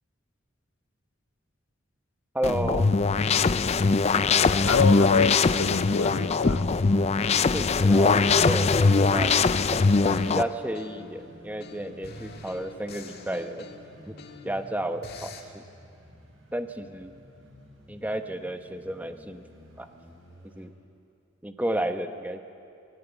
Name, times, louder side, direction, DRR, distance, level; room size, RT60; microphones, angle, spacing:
voice 1, 2.3-2.9 7.5-9.4 10.0-13.7 14.1-14.2 14.4-15.6 16.5-17.1 17.9-19.4 19.8-19.9 20.5-20.7 21.4-22.4, right 1 dB, 10° right, 7 dB, 0.9 m, -32 dB
sound 1, 2.4-10.4, left 4 dB, 30° left, 0.4 m, -21 dB
sound 2, 4.5-20.7, equal, 80° right, 4.7 m, -51 dB
voice 2, 4.6-6.7, left 5 dB, 85° left, 12 dB, 0.8 m, -26 dB
sound 3, 8.9-11.2 11.6-14.6 15.0-15.4, left 4 dB, 50° left, 1.8 m, -46 dB
20.0 x 18.0 x 9.1 m, 2.5 s
head